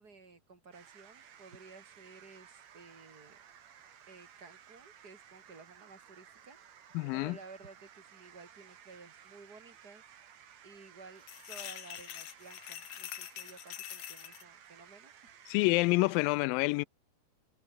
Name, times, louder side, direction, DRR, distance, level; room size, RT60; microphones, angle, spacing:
voice 1, 0.0-3.4 4.1-6.6 7.1-10.0 10.4-15.3, right 4 dB, 25° right, 4.2 m, -54 dB
sound 1, 0.7-16.3, right 9 dB, 55° right, 2.9 m, -57 dB
voice 2, 6.9-7.4 15.5-16.9, left 24 dB, 85° left, 2.3 m, -28 dB
sound 2, 11.2-14.4, left 12 dB, 65° left, 2.3 m, -45 dB
omnidirectional pair, 4.0 m